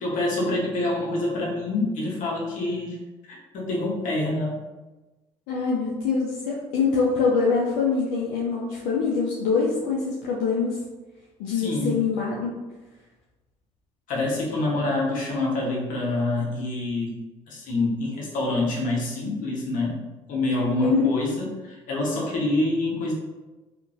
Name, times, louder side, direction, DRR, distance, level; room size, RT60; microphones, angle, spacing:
voice 1, 0.0-3.0 3.3-4.6 11.5-11.9 14.1-17.2 17.5-20.0 20.3-23.1, left 2 dB, 70° left, -3 dB, 0.9 m, -26 dB
voice 2, 5.5-10.8 11.4-12.6 20.8-21.1, left 5 dB, 85° left, -4 dB, 0.5 m, -24 dB
2.9 x 2.5 x 2.5 m, 1.1 s
supercardioid pair, 70°, 14 cm